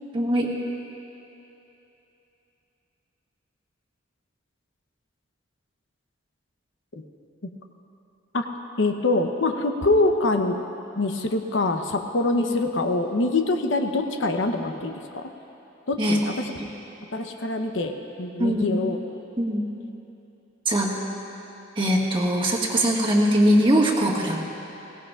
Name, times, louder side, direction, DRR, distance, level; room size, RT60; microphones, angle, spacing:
voice 1, 0.1-0.5 12.3-12.5 16.0-16.2 18.4-18.8 19.4-19.7 20.6-20.9 21.7-24.4, equal, 25° right, -3 dB, 1.6 m, -21 dB
voice 2, 8.8-10.6 11.0-15.3 15.9-16.3 17.1-19.0, left 2 dB, 70° left, 4 dB, 0.9 m, -24 dB
22.0 x 17.0 x 2.4 m, 3.0 s
head